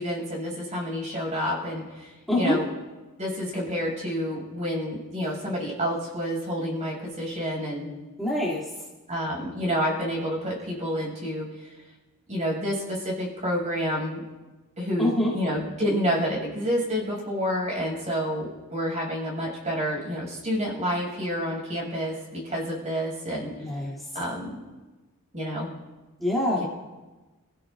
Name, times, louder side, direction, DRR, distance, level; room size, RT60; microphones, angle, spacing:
voice 1, 0.0-2.7 3.2-7.9 9.1-11.7 12.3-14.2 14.8-23.5 24.1-24.6 25.3-25.7 26.6-26.7, equal, 35° right, -2 dB, 7.1 m, -29 dB
voice 2, 8.2-8.7 15.0-15.3 23.6-24.0 26.2-26.6, left 1 dB, ahead, -10 dB, 2.9 m, -25 dB
30.0 x 15.5 x 2.6 m, 1.2 s
head